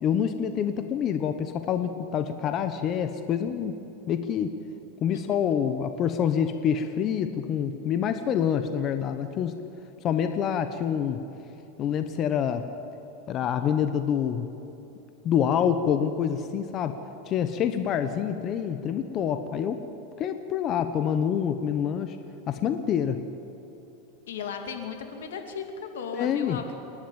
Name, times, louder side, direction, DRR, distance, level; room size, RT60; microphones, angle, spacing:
voice 1, 0.0-3.8 4.1-4.5 5.0-9.5 10.0-11.2 11.8-12.7 13.3-14.5 15.2-17.0 17.3-19.8 20.2-22.2 22.5-23.2 26.1-26.6, left 8 dB, 35° left, 9 dB, 1.0 m, -26 dB
voice 2, 24.3-26.7, left 6 dB, 85° left, 5 dB, 2.7 m, -36 dB
28.0 x 11.5 x 9.0 m, 3.0 s
supercardioid pair, 140°, 0 cm